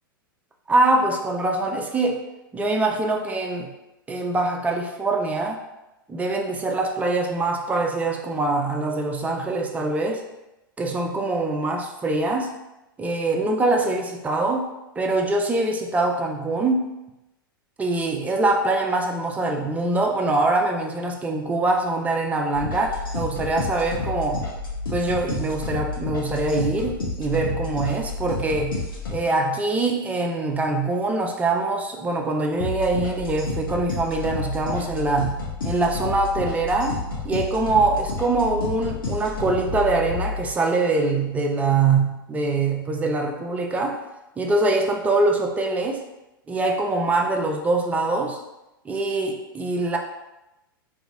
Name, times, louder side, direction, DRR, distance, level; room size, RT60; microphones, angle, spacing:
voice 1, 0.7-2.2 2.5-3.7 4.1-5.6 6.1-10.2 10.8-12.5 13.0-14.7 15.0-16.9 17.8-24.5 24.9-37.0 37.2-44.0 44.4-46.0 46.5-48.4 48.8-50.0, right 2 dB, 10° right, 2 dB, 0.4 m, -23 dB
sound 1, 22.5-29.2 32.6-40.4, left 3 dB, 70° left, 0.9 m, -30 dB
2.8 x 2.7 x 3.7 m, 0.97 s
figure-of-eight pair, 100°, 12 cm